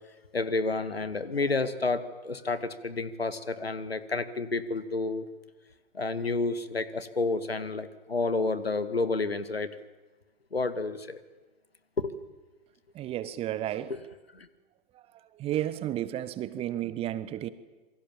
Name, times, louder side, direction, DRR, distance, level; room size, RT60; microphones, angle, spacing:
voice 1, 0.3-5.2 5.9-9.7 10.5-11.2 12.0-12.1 13.9-14.0 14.3-14.5, left 3 dB, 75° left, 12 dB, 2.2 m, -30 dB
voice 2, 12.9-13.9 15.4-17.5, right 12 dB, 20° right, 16 dB, 1.1 m, -32 dB
27.5 x 24.0 x 7.4 m, 1.2 s
figure-of-eight pair, 110°, 30 cm